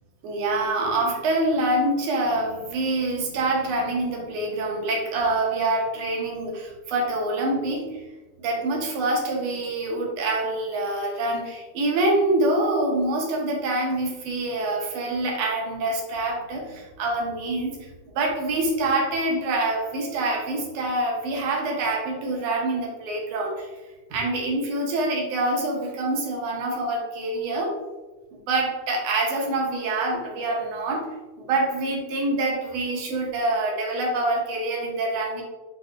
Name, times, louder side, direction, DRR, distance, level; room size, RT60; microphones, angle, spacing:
voice 1, 0.2-7.9 8.4-17.8 18.1-23.7 24.1-27.7 28.3-31.1 31.4-35.4, right 2 dB, 65° right, -1 dB, 1.7 m, -25 dB
6.4 x 3.4 x 2.4 m, 1.2 s
omnidirectional pair, 3.7 m